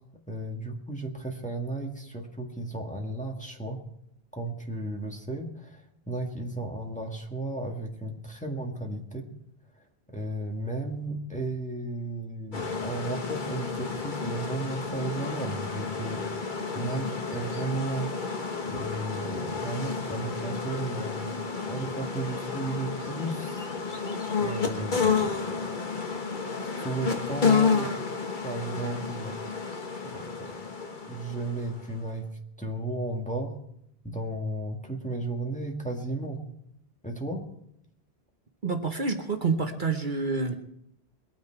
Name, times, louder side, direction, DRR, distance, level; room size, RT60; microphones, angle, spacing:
voice 1, 0.3-3.8 4.3-9.3 10.1-16.2 16.7-18.1 18.7-21.4 21.7-23.7 24.4-25.7 26.8-27.9 28.4-29.4 30.0-30.6 31.0-32.3 32.6-33.6 34.0-36.4 37.0-37.5, right 2 dB, 5° left, 0 dB, 1.7 m, -34 dB
sound 1, 12.5-32.0, left 5 dB, 50° left, 1.4 m, -31 dB
voice 2, 38.6-40.6, right 4 dB, 50° right, 5 dB, 1.1 m, -28 dB
21.5 x 9.4 x 4.6 m, 0.73 s
omnidirectional pair, 1.1 m